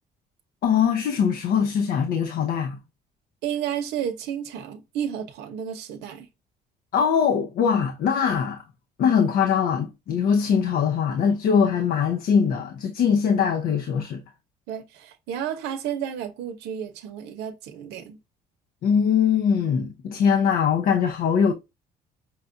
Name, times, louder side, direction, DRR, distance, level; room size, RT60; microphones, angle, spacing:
voice 1, 0.6-2.8 6.9-8.6 9.0-14.2 18.8-21.5, left 7 dB, 60° left, 0.6 m, -22 dB
voice 2, 3.4-6.3 14.7-18.2, right 9 dB, 90° right, 0.8 m, -32 dB
5.6 x 2.3 x 2.5 m
cardioid pair, 110°, 17 cm